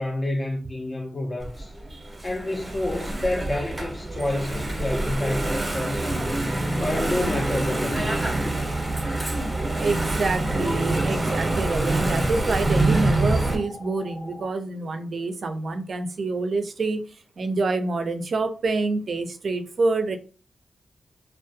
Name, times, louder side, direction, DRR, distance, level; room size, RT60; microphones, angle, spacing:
voice 1, 0.0-1.7 2.2-6.4 6.8-8.1, left 1 dB, 35° left, 0.4 m, -29 dB
Engine / Mechanisms, 1.4-13.6, right 2 dB, 30° right, 0.7 m, -26 dB
sound 1, 7.2-14.5, left 1 dB, 75° left, 1.0 m, -42 dB
voice 2, 9.8-17.0 17.4-20.2, right 3 dB, 65° right, 0.4 m, -27 dB
2.3 x 2.1 x 2.6 m
cardioid pair, 50°, 0 cm